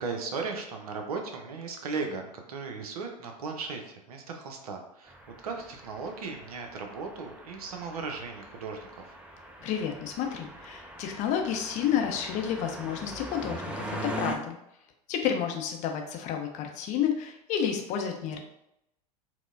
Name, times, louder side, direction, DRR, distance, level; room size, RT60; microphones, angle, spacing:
voice 1, 0.0-5.2 5.4-9.2, right 4 dB, 65° right, 4 dB, 0.7 m, -36 dB
sound 1, 5.1-14.3, right 1 dB, 5° right, 0.3 m, -41 dB
voice 2, 9.6-14.6 15.1-18.4, left 8 dB, 35° left, 3 dB, 0.6 m, -30 dB
4.4 x 2.1 x 2.5 m, 0.81 s
figure-of-eight pair, 90°, 21 cm